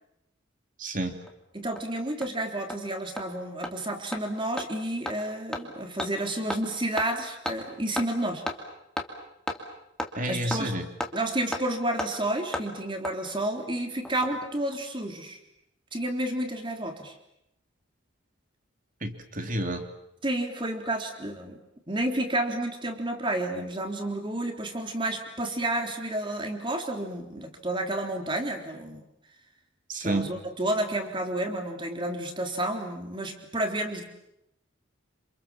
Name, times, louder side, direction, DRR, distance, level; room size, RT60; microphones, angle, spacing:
voice 1, 0.8-1.1 10.1-10.9 19.0-19.8 29.9-30.4, right 1 dB, 40° right, 6 dB, 3.1 m, -30 dB
Hammer, 1.3-1.4 1.8-1.9 2.2-2.3 2.7-2.8 3.2-3.3 3.6-3.7 4.1-4.2 4.6-4.7 5.1-5.2 5.5-5.6 6.0-6.1 6.5-6.6 7.0-7.1 7.5-7.6 8.0-8.1 8.5-8.6 9.0-9.1 9.5-9.6 10.0-10.1 10.5-10.6 11.0-11.1 11.5-11.6 12.0-12.1 12.5-12.7 13.0-13.1 14.1-14.5 14.7-14.8, left 1 dB, 5° left, 2.5 m, -32 dB
voice 2, 1.5-8.4 10.3-10.7 11.1-15.4 15.9-17.1 20.2-21.6 21.9-29.0 30.0-34.1, right 1 dB, 25° right, 4 dB, 3.7 m, -30 dB
28.0 x 28.0 x 7.3 m, 0.81 s
head